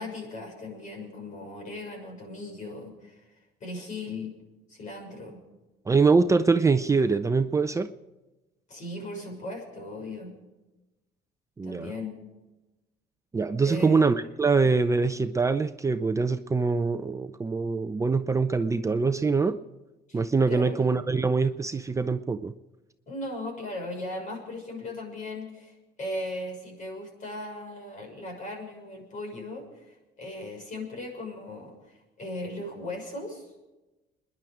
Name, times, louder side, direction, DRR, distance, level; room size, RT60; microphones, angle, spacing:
voice 1, 0.0-3.3 3.6-4.3 4.7-5.4 8.7-10.3 11.6-12.1 13.6-14.0 20.1-20.2 20.5-20.8 23.1-33.5, left 2 dB, 50° left, 2 dB, 6.5 m, -38 dB
voice 2, 5.9-7.9 11.6-11.9 13.3-19.6 20.1-22.5, right 4 dB, 20° right, 9 dB, 0.6 m, -24 dB
26.0 x 11.0 x 5.0 m, 1.0 s
cardioid pair, 110°, 17 cm